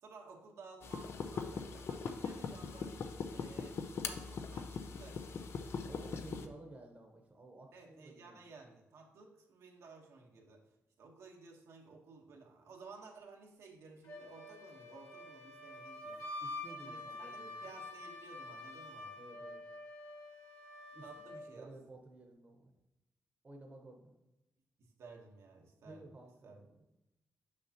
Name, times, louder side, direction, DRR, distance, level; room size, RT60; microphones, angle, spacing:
voice 1, 0.0-2.9 3.3-3.8 4.0-5.2 7.7-10.6 11.0-16.2 16.9-19.1 21.0-21.7 24.8-26.1 26.4-26.6, right 4 dB, 80° right, 1 dB, 1.2 m, -55 dB
sound 1, 0.8-6.5, left 5 dB, 60° left, 0.5 m, -41 dB
voice 2, 5.8-8.5 16.4-17.7 19.2-19.6 20.9-22.7 23.4-24.1 25.8-26.9, right 2 dB, 30° right, 2 dB, 1.0 m, -54 dB
Wind instrument woodwind instrument, 14.0-21.5, left 2 dB, 90° left, 2.3 m, -47 dB
6.5 x 6.0 x 2.9 m, 0.93 s
cardioid pair, 120°, 5 cm